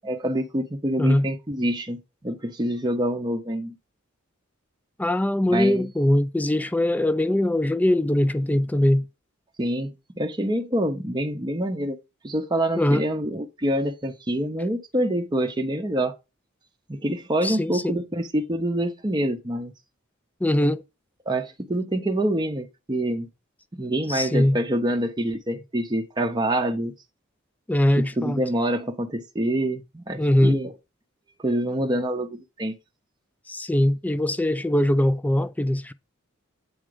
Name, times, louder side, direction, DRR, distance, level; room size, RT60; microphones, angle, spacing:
voice 1, 0.0-3.7 5.5-5.9 9.6-12.0 12.2-16.2 16.9-19.7 21.3-23.3 23.7-26.9 28.0-30.7 31.4-32.8, right 1 dB, 20° right, 0.7 m, -26 dB
voice 2, 5.0-9.0 12.8-13.0 17.4-18.0 20.4-20.8 24.1-24.6 27.7-28.4 30.2-30.6 33.5-35.9, left 1 dB, 5° left, 0.4 m, -21 dB
8.7 x 3.7 x 5.1 m
head